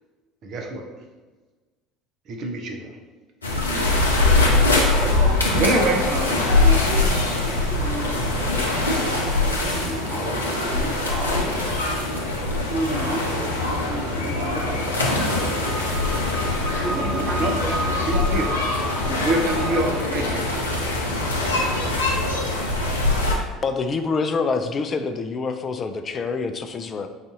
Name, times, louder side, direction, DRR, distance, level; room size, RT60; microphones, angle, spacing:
voice 1, 0.4-0.9 2.3-3.0 5.6-6.4 12.9-13.2 14.3-14.5 16.9-17.5 18.1-18.5 18.9-20.5, right 2 dB, 50° right, 2 dB, 0.8 m, -26 dB
sound 1, 3.4-23.4, left 2 dB, 85° left, 0.6 m, -23 dB
voice 2, 5.0-14.9 16.8-18.2, right 2 dB, 35° right, -3 dB, 1.2 m, -34 dB
sound 2, 13.2-22.5, left 2 dB, 80° right, 1.0 m, -32 dB
sound 3, 14.1-19.8, right 1 dB, 5° right, 0.6 m, -33 dB
voice 3, 23.6-27.1, left 4 dB, 35° left, 8 dB, 0.4 m, -26 dB
4.2 x 2.7 x 3.7 m, 1.3 s
figure-of-eight pair, 65°, 0 cm